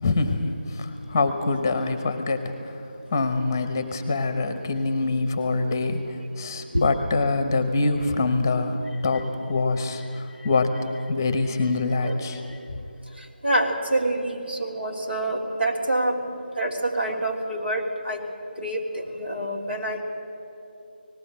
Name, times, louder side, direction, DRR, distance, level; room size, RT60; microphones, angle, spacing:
voice 1, 0.0-2.8 3.1-10.8 11.1-12.4, left 3 dB, 20° left, 9 dB, 0.8 m, -25 dB
voice 2, 12.0-12.4 13.2-16.2 16.5-18.2 18.6-20.0, right 1 dB, 80° right, -1 dB, 3.1 m, -27 dB
19.0 x 15.0 x 9.1 m, 2.8 s
figure-of-eight pair, 160°, 6 cm